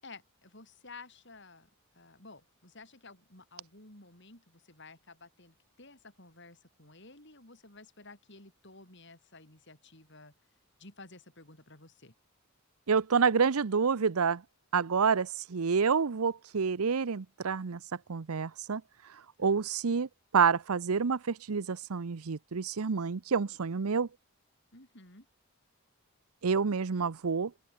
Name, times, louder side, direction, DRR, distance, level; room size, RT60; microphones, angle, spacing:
voice 1, 0.0-1.7 1.9-10.3 10.8-12.1 19.4-19.6 24.7-25.3, left 3 dB, 55° left, 7.9 m, -53 dB
voice 2, 12.9-14.4 14.7-17.8 18.1-18.8 19.4-20.1 20.3-24.1 26.4-27.5, right 5 dB, 90° right, 0.7 m, -28 dB
open air
head